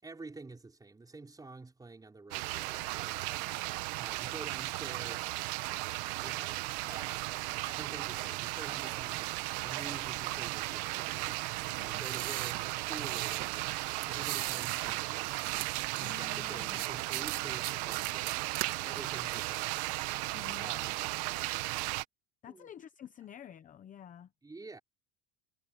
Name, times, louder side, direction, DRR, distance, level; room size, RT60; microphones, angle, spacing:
voice 1, 0.0-5.3 6.0-11.5 11.9-13.7 14.0-15.5 16.0-19.7 20.6-21.1 22.5-22.7 24.4-24.8, right 3 dB, 10° right, 5.2 m, -49 dB
sound 1, 2.3-22.0, right 21 dB, 65° right, 1.3 m, -36 dB
voice 2, 11.7-12.0 16.0-16.8 20.3-20.7 22.4-24.3, left 10 dB, 20° left, 0.7 m, -50 dB
sound 2, 11.8-13.5 14.0-14.9 15.2-16.2 16.7-18.7 19.1-20.1, right 16 dB, 50° right, 2.0 m, -40 dB
cardioid pair, 170°, 38 cm